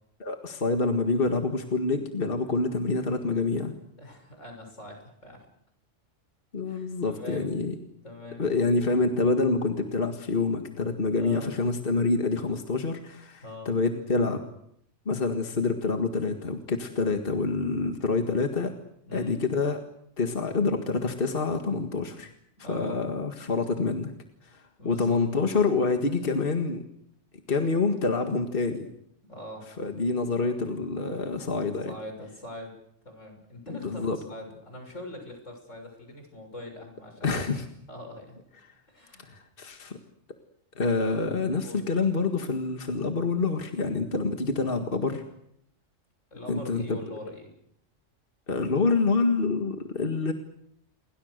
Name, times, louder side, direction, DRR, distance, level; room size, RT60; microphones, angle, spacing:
voice 1, 0.2-3.7 6.5-7.7 8.4-14.4 15.1-18.7 19.1-19.8 20.2-22.3 22.7-24.1 24.5-26.8 27.5-28.9 29.8-32.0 33.7-34.2 37.2-37.6 39.3-40.0 40.8-45.2 46.5-47.0 48.5-50.3, left 3 dB, 50° left, 5 dB, 2.0 m, -27 dB
voice 2, 4.0-5.4 6.7-7.5 8.0-8.4 11.2-11.5 13.4-13.8 19.1-19.4 22.6-23.1 24.8-25.2 29.3-29.7 31.9-32.7 33.1-37.4 37.9-38.4 38.9-39.3 41.0-41.2 41.6-41.9 46.3-47.5, left 1 dB, 85° left, 4 dB, 7.1 m, -42 dB
29.0 x 23.0 x 6.7 m, 0.74 s
omnidirectional pair, 1.3 m